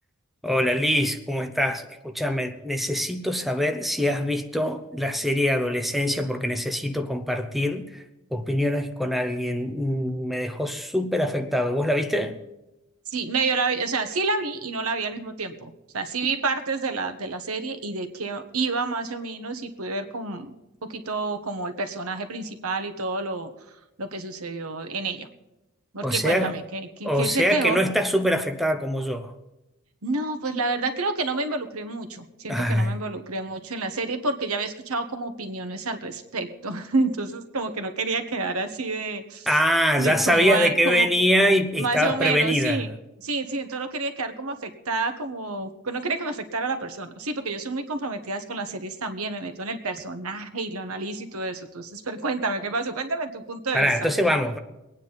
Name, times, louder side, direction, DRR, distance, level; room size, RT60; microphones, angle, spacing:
voice 1, 0.4-8.0 8.3-12.4 26.0-26.5 27.0-29.3 32.5-32.9 39.5-42.8 53.7-54.6, equal, ahead, 0.8 m, -24 dB
voice 2, 13.1-20.5 20.9-23.5 24.0-25.3 25.9-27.8 30.0-39.5 40.0-41.1 41.8-42.9 43.2-53.9, right 3 dB, 85° right, 1.3 m, -29 dB
23.0 x 9.4 x 4.0 m
head